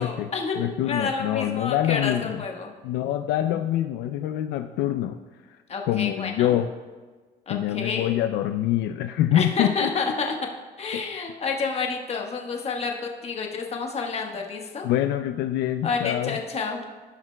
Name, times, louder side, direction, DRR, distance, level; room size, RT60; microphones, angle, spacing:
voice 1, 0.0-2.7 5.7-6.6 7.5-8.1 9.3-10.5 10.8-14.9 15.8-16.8, left 4 dB, 40° left, 2 dB, 1.3 m, -29 dB
voice 2, 0.6-2.4 2.8-5.2 5.9-6.7 7.5-9.9 14.8-16.4, left 12 dB, 80° left, 8 dB, 0.4 m, -25 dB
15.5 x 5.8 x 2.2 m, 1.4 s
cardioid pair, 110°, 17 cm